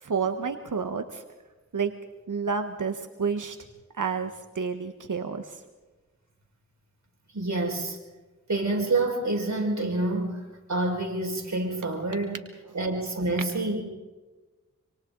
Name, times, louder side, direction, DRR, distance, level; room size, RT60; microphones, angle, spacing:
voice 1, 0.0-1.2 1.7-1.9 2.3-3.6 3.9-5.6, right 5 dB, 85° right, 7 dB, 1.3 m, -30 dB
voice 2, 7.3-8.0 8.5-10.4 10.7-12.4 12.7-13.8, right 2 dB, 65° right, 1 dB, 5.5 m, -27 dB
27.0 x 26.0 x 3.9 m, 1.2 s
wide cardioid pair, 50°, 30 cm